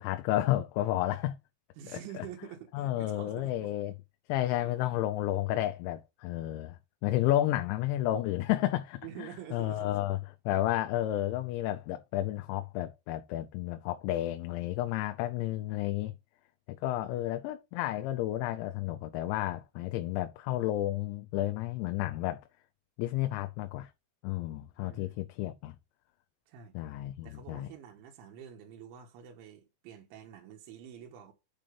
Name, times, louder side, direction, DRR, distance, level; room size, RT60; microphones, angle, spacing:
voice 1, 0.0-1.4 2.7-3.9 4.3-10.2 10.5-16.1 16.8-22.4 23.0-23.9 24.2-25.7 26.8-27.7, left 14 dB, 85° left, 2.9 m, -31 dB
voice 2, 1.8-3.7 4.6-4.9 9.0-10.0 17.1-17.4 24.8-25.2 26.5-26.7 27.2-31.3, right 9 dB, 90° right, 3.6 m, -47 dB
8.9 x 3.9 x 5.2 m
omnidirectional pair, 5.3 m